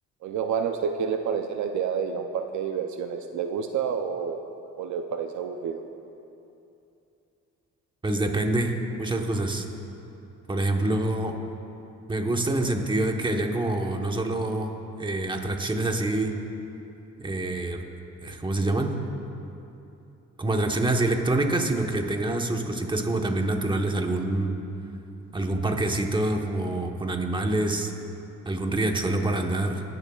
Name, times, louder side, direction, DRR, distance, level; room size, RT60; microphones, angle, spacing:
voice 1, 0.2-4.4 4.8-5.8, right 7 dB, 70° right, 5 dB, 0.7 m, -29 dB
voice 2, 8.0-9.6 10.5-11.3 12.1-14.7 15.0-16.3 17.2-17.8 18.2-18.9 20.4-24.6 25.3-27.9 28.4-29.9, right 2 dB, 15° right, 3 dB, 1.2 m, -26 dB
21.0 x 11.0 x 2.4 m, 2.8 s
cardioid pair, 90°, 30 cm